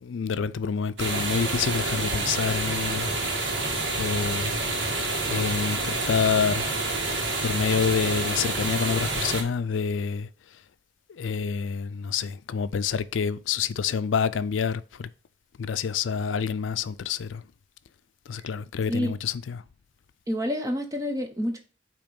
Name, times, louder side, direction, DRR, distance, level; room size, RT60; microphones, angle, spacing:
voice 1, 0.0-3.1 3.9-4.5 5.3-6.6 7.4-10.3 11.2-15.1 15.6-17.4 18.3-19.6, left 6 dB, 85° left, 0.4 m, -27 dB
sound 1, 1.0-9.4, right 2 dB, 75° right, 1.6 m, -28 dB
voice 2, 20.3-21.6, equal, 20° right, 0.9 m, -28 dB
8.6 x 3.0 x 5.2 m
head